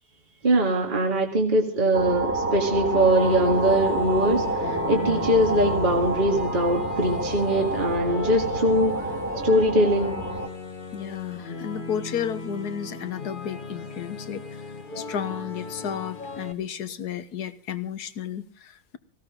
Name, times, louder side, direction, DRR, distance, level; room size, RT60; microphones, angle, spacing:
voice 1, 0.4-9.0 9.4-10.1, right 1 dB, 25° right, 1 dB, 2.2 m, -22 dB
sound 1, 1.9-10.5, right 2 dB, 10° right, 1.7 m, -28 dB
sound 2, 2.8-16.5, left 4 dB, 30° left, 1.5 m, -37 dB
voice 2, 10.9-19.0, left 8 dB, 65° left, 12 dB, 1.6 m, -33 dB
19.0 x 16.5 x 3.8 m, 0.37 s
omnidirectional pair, 1.9 m